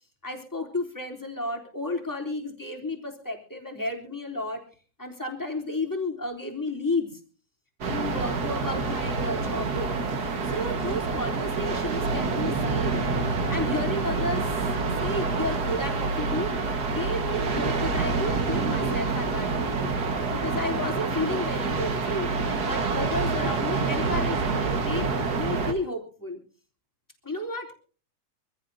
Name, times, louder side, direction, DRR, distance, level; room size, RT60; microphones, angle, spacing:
voice 1, 0.2-4.6 5.0-7.2 7.9-10.0 10.4-13.1 13.5-14.6 15.0-16.6 16.9-20.0 20.4-22.3 22.6-25.1 25.3-26.4 27.2-27.7, left 2 dB, 5° left, 2 dB, 3.3 m, -32 dB
sound 1, 7.8-25.7, right 4 dB, 40° right, 1.7 m, -27 dB
25.5 x 15.5 x 2.8 m, 0.38 s
omnidirectional pair, 3.3 m